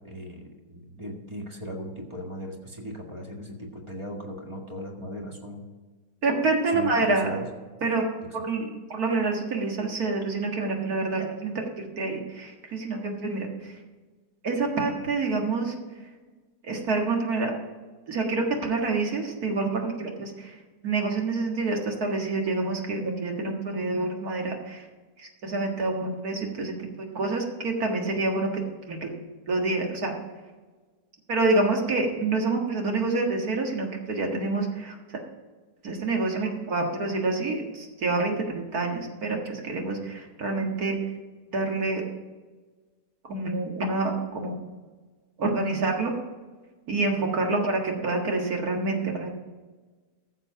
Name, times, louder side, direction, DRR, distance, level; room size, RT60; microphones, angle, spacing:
voice 1, 0.0-5.6 6.7-7.5, equal, 20° right, 0 dB, 1.8 m, -38 dB
voice 2, 6.2-7.4 7.8-8.1 8.3-8.6 8.9-13.7 14.4-15.8 16.6-17.5 18.1-20.6 20.8-24.9 25.2-28.5 28.9-29.1 29.5-30.1 31.3-35.2 35.8-41.0 41.5-42.0 43.3-44.6 45.4-46.1 46.9-49.3, right 3 dB, 65° right, 1 dB, 2.2 m, -27 dB
14.5 x 6.7 x 5.7 m, 1.3 s
omnidirectional pair, 1.8 m